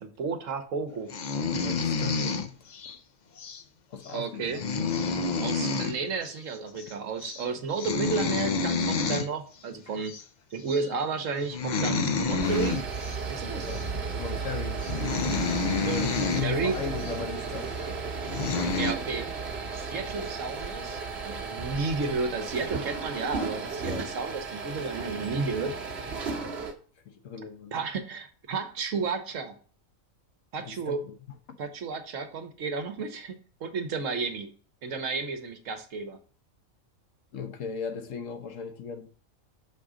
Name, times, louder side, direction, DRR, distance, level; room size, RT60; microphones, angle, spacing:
voice 1, 0.0-1.1 4.1-4.6 5.4-10.1 10.5-12.8 13.2-13.7 15.7-16.7 18.8-19.3 19.7-25.7 27.7-29.6 30.5-31.0 31.6-33.4 33.6-34.5 34.8-36.2, right 4 dB, 70° right, 1.3 m, -32 dB
sound 1, 1.1-3.0 3.4-3.6 4.1-4.2 4.4-6.0 6.2-6.4 6.7-6.9 7.2-7.4 7.7-9.3 10.1-10.2 10.7-10.9 11.4-13.2 13.7-13.9 14.5-14.6 14.8-16.5 17.0-17.1 17.8-17.9 18.3-18.9, left 4 dB, 55° left, 0.5 m, -29 dB
voice 2, 1.5-2.6 3.9-4.5 9.9-10.0 13.7-14.8 16.2-17.8 23.8-24.1 27.0-27.8 30.6-31.6 37.3-39.1, left 6 dB, 70° left, 1.2 m, -37 dB
sound 2, 12.2-26.7, right 4 dB, 55° right, 1.1 m, -34 dB
6.4 x 3.7 x 4.9 m
omnidirectional pair, 1.4 m